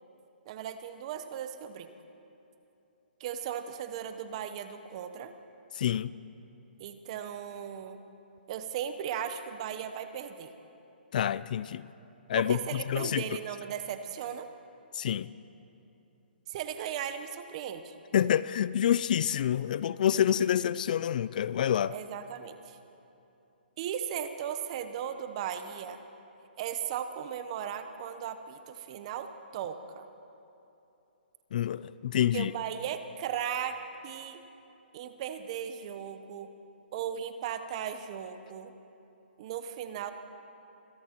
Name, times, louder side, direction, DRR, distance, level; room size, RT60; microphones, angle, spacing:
voice 1, 0.5-1.9 3.2-5.3 6.8-8.0 8.5-10.5 12.4-14.5 16.5-17.9 21.9-22.8 23.8-26.0 26.6-30.1 32.3-34.4 34.9-36.5 36.9-38.7 39.4-40.1, right 9 dB, 35° right, 0.8 m, -37 dB
voice 2, 5.8-6.1 11.1-11.8 12.3-12.6 12.9-13.2 14.9-15.3 18.1-21.9 31.5-32.5, left 10 dB, 50° left, 0.3 m, -27 dB
25.5 x 18.0 x 3.0 m
hypercardioid pair, 150°, 6 cm